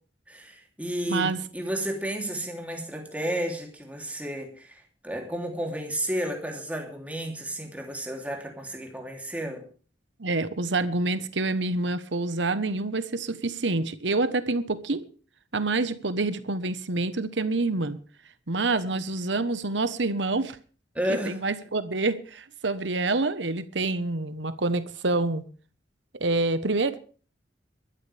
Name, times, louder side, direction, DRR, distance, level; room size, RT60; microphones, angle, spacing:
voice 1, 0.3-9.6 20.9-21.4, right 1 dB, 10° right, 3.1 m, -32 dB
voice 2, 10.2-15.0 15.5-18.0 18.5-20.6 21.1-25.4 26.1-27.0, right 3 dB, 75° right, 1.2 m, -27 dB
23.0 x 13.0 x 3.5 m
head